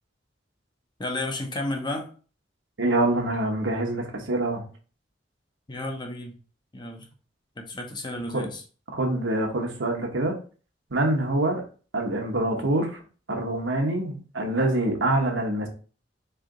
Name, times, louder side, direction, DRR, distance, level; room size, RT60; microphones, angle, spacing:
voice 1, 1.0-2.1 5.7-6.4 6.7-7.1 7.6-8.6 12.6-12.7, left 2 dB, 25° left, 3 dB, 0.7 m, -32 dB
voice 2, 2.8-4.6 8.3-8.5 8.9-10.4 10.9-11.6 11.9-13.0 13.3-15.7, right 2 dB, 90° right, 2 dB, 1.0 m, -25 dB
3.8 x 3.3 x 3.7 m, 0.39 s
head